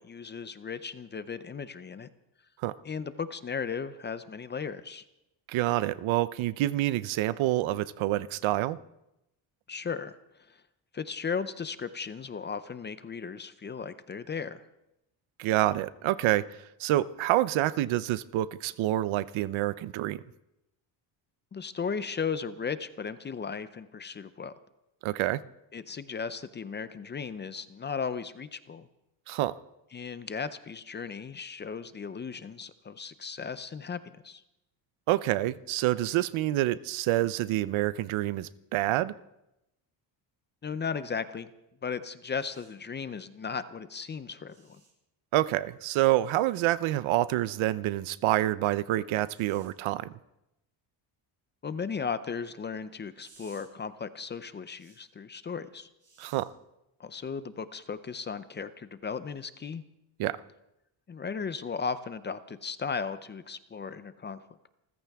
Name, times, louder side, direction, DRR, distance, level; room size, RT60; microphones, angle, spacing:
voice 1, 0.0-2.1 2.8-5.0 9.7-10.2 10.5-10.6 10.9-14.6 21.5-24.5 25.7-28.9 29.9-34.4 40.6-41.5 41.8-44.8 51.6-55.9 57.0-59.8 61.1-64.7, left 6 dB, 25° left, 13 dB, 0.5 m, -36 dB
voice 2, 5.5-8.8 15.4-16.4 16.8-20.2 25.0-25.4 29.3-29.5 35.1-39.1 45.3-50.1 56.2-56.5 60.2-60.4, right 15 dB, 80° right, 16 dB, 0.8 m, -27 dB
sound 1, 42.4-42.7 44.5-44.9 46.2-46.4 49.2-49.7 53.2-53.6 54.8-55.0 56.0-56.4 57.9-58.1, right 4 dB, 30° right, 7.3 m, -59 dB
28.0 x 14.5 x 3.5 m, 0.87 s
cardioid pair, 165°, 47 cm